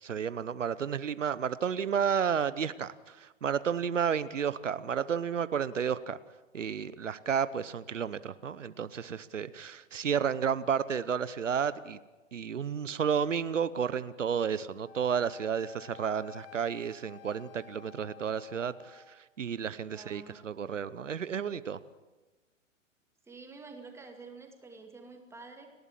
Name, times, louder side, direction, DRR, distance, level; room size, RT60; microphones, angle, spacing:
voice 1, 0.0-6.2 6.5-12.0 12.3-21.8, right 7 dB, 70° right, 0.9 m, -32 dB
Wind instrument woodwind instrument, 14.8-19.1, left 9 dB, 50° left, 1.8 m, -53 dB
voice 2, 19.9-20.5 23.3-25.7, right 4 dB, 5° right, 2.3 m, -49 dB
29.0 x 12.0 x 7.4 m
figure-of-eight pair, 120°, 38 cm